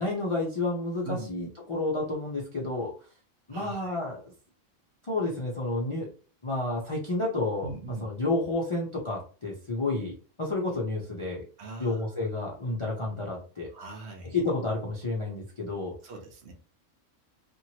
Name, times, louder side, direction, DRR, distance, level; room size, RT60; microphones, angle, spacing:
voice 1, 0.0-2.9 3.5-4.3 5.0-6.1 6.4-7.7 8.0-11.4 11.8-13.7 14.3-15.9, left 2 dB, 45° left, -3 dB, 0.4 m, -30 dB
voice 2, 3.5-4.0 7.6-8.1 11.6-12.0 13.7-14.4 16.0-16.5, right 3 dB, 60° right, 2 dB, 0.9 m, -40 dB
2.9 x 2.5 x 2.8 m, 0.38 s
omnidirectional pair, 1.4 m